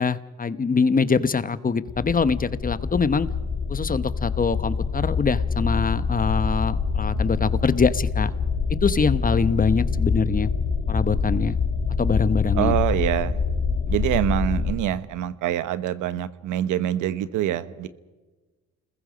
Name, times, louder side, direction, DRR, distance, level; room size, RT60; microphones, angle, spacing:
voice 1, 0.0-3.3 3.7-8.3 8.8-10.5 10.9-11.6 12.0-12.8, left 5 dB, 30° left, 14 dB, 1.0 m, -23 dB
sound 1, 1.9-14.7, left 5 dB, 55° left, 6.6 m, -25 dB
voice 2, 12.5-13.4 13.9-17.9, right 11 dB, 90° right, 13 dB, 1.2 m, -25 dB
29.5 x 20.5 x 5.1 m, 1.2 s
cardioid pair, 90°, 30 cm